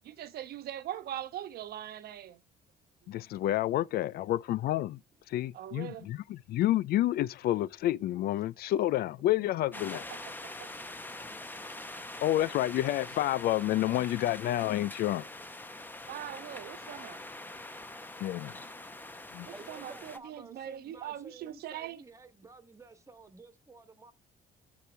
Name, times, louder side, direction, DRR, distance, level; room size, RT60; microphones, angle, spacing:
voice 1, 0.0-2.4 3.1-3.2 5.5-6.1 10.1-10.9 12.0-12.1 16.1-17.2 19.5-22.0, right 11 dB, 65° right, 1.1 m, -42 dB
voice 2, 3.1-5.0 5.3-10.0 12.2-15.3 18.2-18.6 19.3-19.5, left 14 dB, 65° left, 0.5 m, -29 dB
voice 3, 3.9-4.3 6.1-6.2 15.4-15.5 19.5-24.1, right 3 dB, 15° right, 1.7 m, -53 dB
sound 1, 9.7-20.2, left 2 dB, 10° left, 1.1 m, -44 dB
13.5 x 4.8 x 3.4 m
cardioid pair, 110°, 17 cm